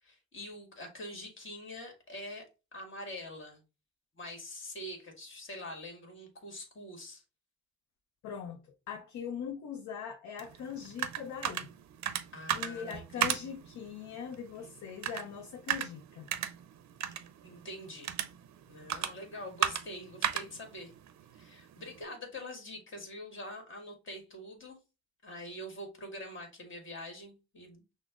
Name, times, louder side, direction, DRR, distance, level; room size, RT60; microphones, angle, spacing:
voice 1, 0.0-3.6 4.1-7.2 12.3-13.5 17.4-18.1 18.7-20.9 21.3-24.8 25.2-27.8, left 1 dB, 45° left, 1.5 m, -45 dB
voice 2, 8.2-11.7 12.5-16.3, left 7 dB, 80° left, 0.5 m, -41 dB
sound 1, 10.4-22.0, right 10 dB, 65° right, 0.5 m, -37 dB
5.9 x 2.0 x 2.3 m
cardioid pair, 80°, 29 cm